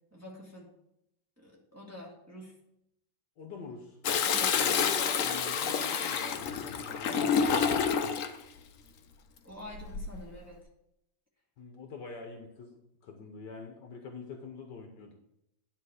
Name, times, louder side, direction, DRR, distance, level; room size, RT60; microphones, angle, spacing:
voice 1, 0.1-0.7 1.4-2.6 4.3-4.6 9.4-10.6, left 1 dB, 10° right, -4 dB, 1.9 m, -47 dB
voice 2, 3.4-4.0 4.5-7.7 11.6-12.8 13.0-15.1, left 4 dB, 60° left, 3 dB, 1.4 m, -44 dB
Toilet flush, 4.0-8.4 9.7-10.2, left 6 dB, 85° left, 0.7 m, -28 dB
10.0 x 4.1 x 6.5 m, 0.83 s
omnidirectional pair, 2.2 m